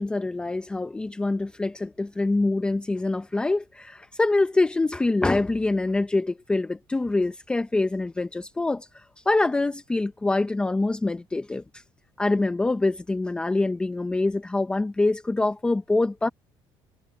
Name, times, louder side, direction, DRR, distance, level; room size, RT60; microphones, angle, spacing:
voice 1, 0.0-8.9 9.3-11.6 12.2-16.3, left 2 dB, 10° left, 0.5 m, -25 dB
cardioid pair, 155°, 9 cm